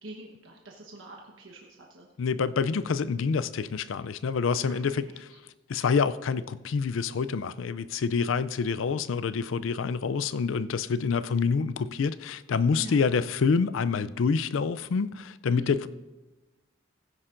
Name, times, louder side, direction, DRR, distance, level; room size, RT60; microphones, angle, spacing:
voice 1, 0.0-2.1 4.6-4.8 12.8-13.0 15.5-15.7, right 1 dB, 80° right, 1.2 m, -44 dB
voice 2, 2.2-5.3 5.7-15.9, left 5 dB, 80° left, 0.4 m, -27 dB
17.0 x 9.9 x 2.6 m
head